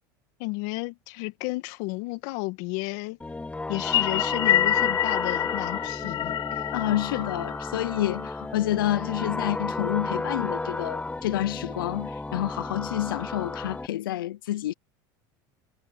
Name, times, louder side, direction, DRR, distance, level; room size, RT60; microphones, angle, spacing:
voice 1, 0.4-3.2 3.7-6.6, left 24 dB, 70° left, 1.9 m, -33 dB
sound 1, 3.2-13.9, left 2 dB, 10° left, 1.8 m, -33 dB
sound 2, 3.7-8.3, left 12 dB, 40° left, 0.6 m, -27 dB
voice 2, 6.7-14.7, left 14 dB, 90° left, 0.5 m, -28 dB
hypercardioid pair, 95°, 11 cm